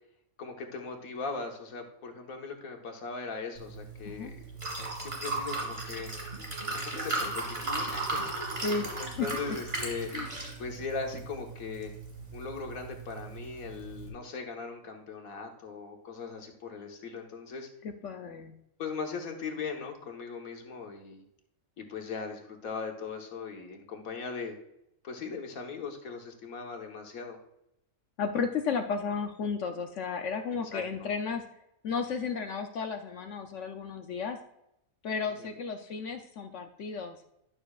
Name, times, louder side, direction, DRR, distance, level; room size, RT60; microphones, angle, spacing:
voice 1, 0.4-4.4 5.0-6.1 6.7-10.1 10.6-11.9 12.3-17.7 18.8-21.2 21.8-24.6 25.0-27.4 30.7-31.1 35.4-35.5, left 4 dB, 80° left, 3 dB, 1.6 m, -39 dB
Liquid, 3.6-14.1, right 2 dB, 35° right, 3.1 m, -37 dB
voice 2, 9.2-9.6 10.1-10.3 17.8-18.5 28.2-31.4 31.8-34.4 35.0-37.2, left 5 dB, 65° left, 6 dB, 0.9 m, -33 dB
11.5 x 6.8 x 2.4 m, 0.81 s
omnidirectional pair, 1.4 m